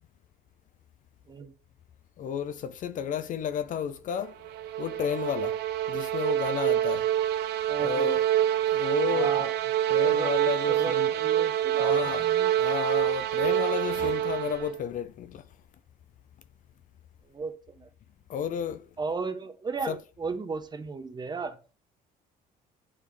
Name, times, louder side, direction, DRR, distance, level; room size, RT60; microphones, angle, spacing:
voice 1, 2.2-4.4 4.8-5.6 5.9-7.1 7.8-8.2 8.7-9.5 9.9-11.1 11.8-12.3 12.5-15.4 18.3-18.9 19.9-20.0, left 8 dB, 50° left, 0.4 m, -32 dB
sound 1, 4.3-14.8, right 11 dB, 75° right, 0.5 m, -26 dB
voice 2, 7.7-8.2 9.1-9.5 10.0-10.3 10.7-12.5 17.2-17.9 19.0-21.6, right 4 dB, 25° right, 0.6 m, -35 dB
9.5 x 3.3 x 3.3 m
cardioid pair, 110°, 17 cm